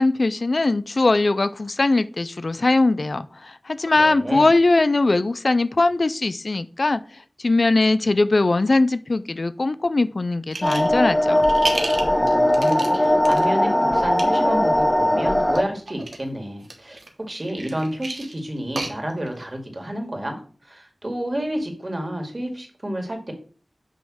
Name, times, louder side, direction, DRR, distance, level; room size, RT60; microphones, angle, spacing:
voice 1, 0.0-7.0 7.4-11.4, left 2 dB, 65° left, 0.4 m, -20 dB
voice 2, 4.0-4.5 12.1-17.0 17.3-23.3, equal, 40° right, 2.1 m, -30 dB
sound 1, 10.5-11.0 11.3-13.4 14.0-14.2 15.5-16.2 16.6-19.4, right 3 dB, 90° right, 1.3 m, -32 dB
sound 2, 10.6-15.6, left 1 dB, 20° left, 1.0 m, -19 dB
9.0 x 3.1 x 6.1 m
wide cardioid pair, 50°, 0 cm